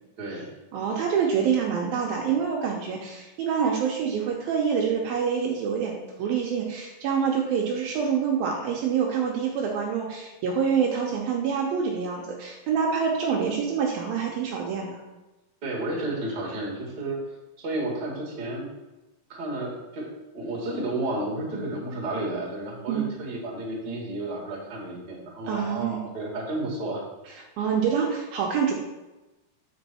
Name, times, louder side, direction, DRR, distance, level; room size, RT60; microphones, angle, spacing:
voice 1, 0.2-0.5 15.6-17.2 17.6-18.7 19.3-20.1 20.3-27.0, right 2 dB, 35° right, -4 dB, 2.0 m, -32 dB
voice 2, 0.7-15.0 22.9-23.1 25.5-26.0 27.6-28.7, right 6 dB, 75° right, -1 dB, 2.5 m, -26 dB
7.8 x 5.3 x 4.2 m, 1.1 s
omnidirectional pair, 4.5 m